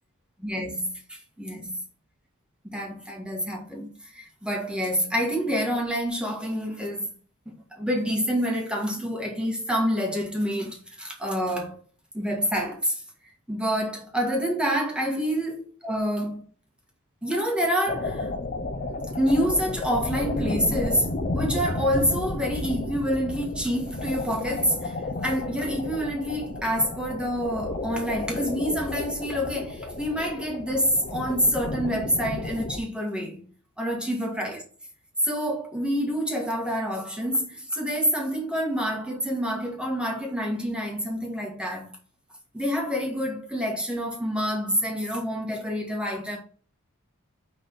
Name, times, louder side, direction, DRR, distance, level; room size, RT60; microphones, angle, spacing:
voice 1, 0.4-1.8 2.6-7.1 7.7-11.8 12.1-13.0 13.5-16.4 17.2-18.3 19.1-24.9 25.2-33.4 33.8-34.6 35.2-41.9 42.5-46.4, equal, 5° right, 1.7 m, -27 dB
sound 1, 17.9-32.8, left 2 dB, 35° left, 0.8 m, -32 dB
6.5 x 3.8 x 5.4 m
head